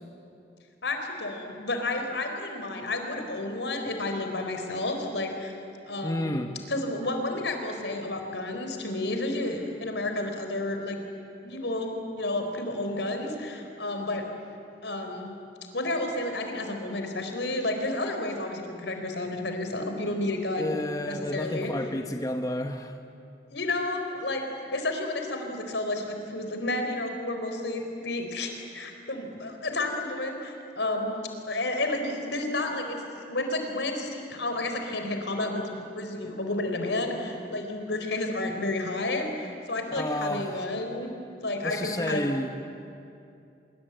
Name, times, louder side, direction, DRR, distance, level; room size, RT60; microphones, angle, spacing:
voice 1, 0.8-5.5 5.8-11.0 11.4-14.2 14.8-15.3 15.7-20.8 21.0-21.7 23.5-31.2 31.5-41.2 41.4-42.3, left 2 dB, 80° left, 5 dB, 4.1 m, -31 dB
voice 2, 6.0-6.5 20.6-23.0 40.0-40.6 41.6-42.5, left 1 dB, 20° left, 5 dB, 1.0 m, -30 dB
25.5 x 23.0 x 9.0 m, 2.6 s
head